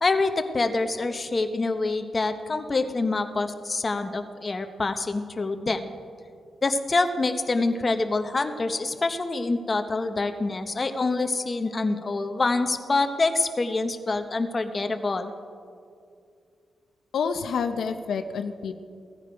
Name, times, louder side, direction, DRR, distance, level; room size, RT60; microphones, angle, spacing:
voice 1, 0.0-5.9 6.6-15.3, left 3 dB, 30° left, 7 dB, 0.8 m, -26 dB
voice 2, 17.1-18.7, left 6 dB, 70° left, 8 dB, 0.7 m, -28 dB
17.0 x 15.0 x 5.1 m, 2.4 s
wide cardioid pair, 130°, 0 cm